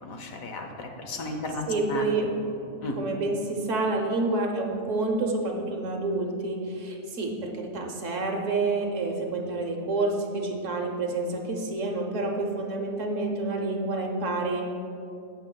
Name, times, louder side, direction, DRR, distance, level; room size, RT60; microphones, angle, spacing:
voice 1, 0.0-2.0 2.8-3.0, left 2 dB, 70° left, 4 dB, 1.3 m, -34 dB
voice 2, 1.7-14.6, right 2 dB, 60° right, 1 dB, 1.2 m, -28 dB
16.5 x 6.7 x 2.3 m, 2.6 s
omnidirectional pair, 1.5 m